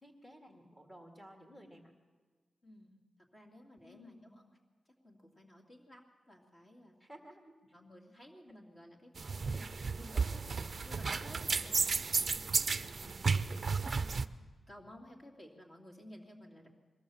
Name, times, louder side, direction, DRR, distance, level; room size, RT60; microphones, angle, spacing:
voice 1, 0.0-1.9 3.8-4.5 7.0-7.5, equal, 5° left, 2 dB, 2.1 m, -55 dB
voice 2, 2.6-3.0 3.3-4.4 5.0-6.9 7.7-13.9 14.7-16.7, left 1 dB, 25° left, 0 dB, 2.8 m, -55 dB
sound 1, 9.2-14.3, right 4 dB, 35° right, 0.6 m, -33 dB
22.5 x 16.5 x 7.2 m, 1.4 s
wide cardioid pair, 175°, 0 cm